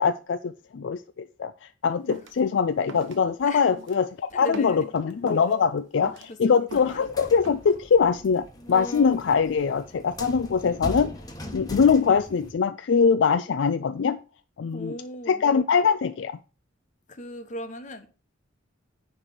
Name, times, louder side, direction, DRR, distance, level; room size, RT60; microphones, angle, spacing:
voice 1, 0.0-11.1 11.5-14.2 14.6-14.9 15.3-16.4, left 6 dB, 65° left, 0.4 m, -23 dB
sound 1, 2.1-2.4 2.9-3.2 3.7-4.0 4.4-5.5 5.9-7.0 7.4-7.8, right 2 dB, 75° right, 1.1 m, -41 dB
voice 2, 4.3-4.9 6.3-7.0 14.7-15.4 17.1-18.1, equal, 40° left, 1.1 m, -38 dB
sound 2, 6.7-12.5, equal, 20° left, 1.2 m, -39 dB
9.9 x 3.4 x 5.9 m
head